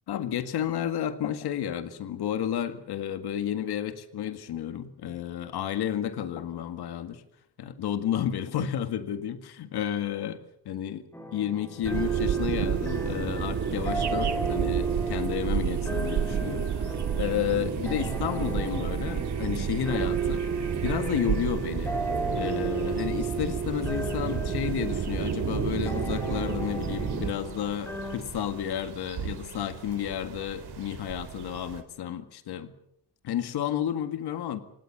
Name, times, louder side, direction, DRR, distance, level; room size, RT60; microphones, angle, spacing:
voice 1, 0.1-7.2 7.6-10.4 10.7-11.0 11.3-20.4 20.8-22.0 22.4-32.7 33.2-34.6, left 10 dB, 75° left, 9 dB, 2.0 m, -31 dB
sound 1, 11.1-28.2, right 4 dB, 5° left, 3.4 m, -34 dB
sound 2, 11.8-27.3, right 6 dB, 45° right, 2.6 m, -32 dB
sound 3, 11.9-31.8, right 10 dB, 70° right, 3.8 m, -37 dB
27.0 x 19.0 x 7.4 m, 0.73 s
cardioid pair, 155°, 39 cm